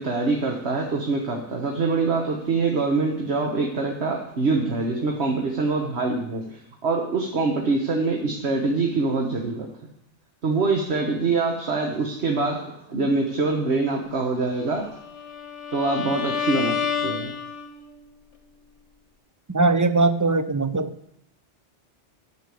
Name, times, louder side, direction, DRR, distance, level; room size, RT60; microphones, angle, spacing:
voice 1, 0.0-9.7 10.4-15.0 15.7-17.3, right 3 dB, 65° right, 1 dB, 1.6 m, -24 dB
Bowed string instrument, 14.9-18.0, left 6 dB, 85° left, 1.7 m, -29 dB
voice 2, 19.5-20.9, right 3 dB, 20° right, 11 dB, 0.5 m, -20 dB
11.5 x 6.3 x 8.4 m, 0.72 s
omnidirectional pair, 1.2 m